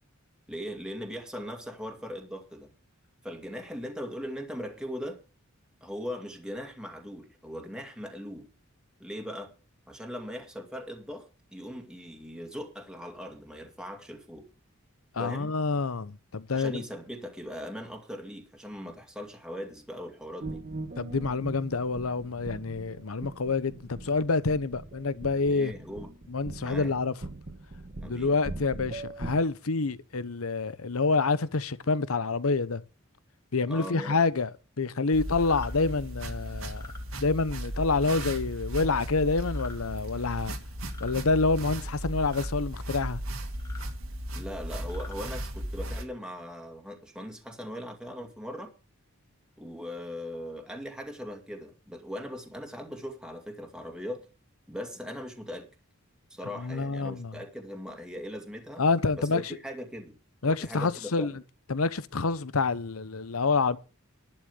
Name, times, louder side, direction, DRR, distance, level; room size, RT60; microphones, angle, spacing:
voice 1, 0.5-2.7 3.2-5.2 5.8-8.5 9.0-9.5 9.9-14.5 15.2-15.5 16.5-20.6 25.5-26.1 26.6-26.9 28.0-28.3 33.7-34.2 44.3-48.7 49.6-54.3 54.7-55.7 56.3-58.8 59.1-60.2 60.4-61.4, equal, 5° right, 2.3 m, -39 dB
voice 2, 15.1-16.8 21.0-25.7 26.3-27.1 28.0-32.8 33.5-34.5 34.8-36.8 37.2-40.5 41.0-43.2 56.6-57.4 58.8-59.6 60.4-61.3 61.7-63.8, left 4 dB, 80° left, 0.9 m, -27 dB
sound 1, 20.4-29.4, right 2 dB, 40° right, 1.1 m, -41 dB
sound 2, 35.1-46.0, equal, 70° right, 2.2 m, -36 dB
sound 3, 35.4-35.7 36.7-37.0 38.1-38.4 39.4-39.8 40.8-41.2 42.2-42.5 43.5-43.9 44.8-45.2, left 3 dB, 15° left, 2.5 m, -47 dB
11.5 x 6.4 x 8.3 m
head